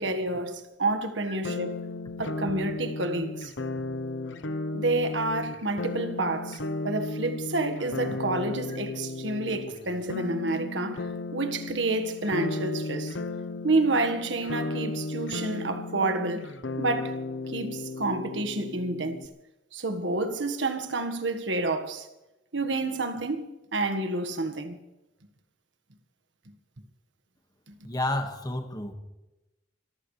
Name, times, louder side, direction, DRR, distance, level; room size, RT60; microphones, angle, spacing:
voice 1, 0.0-1.8 2.2-3.5 4.7-13.2 13.6-16.5 16.8-19.2 19.7-22.1 22.5-24.8, right 2 dB, 80° right, 1.6 m, -29 dB
sound 1, 1.4-19.3, left 2 dB, 90° left, 0.9 m, -35 dB
voice 2, 27.8-28.9, left 1 dB, 20° left, 1.7 m, -31 dB
25.0 x 15.0 x 3.3 m
head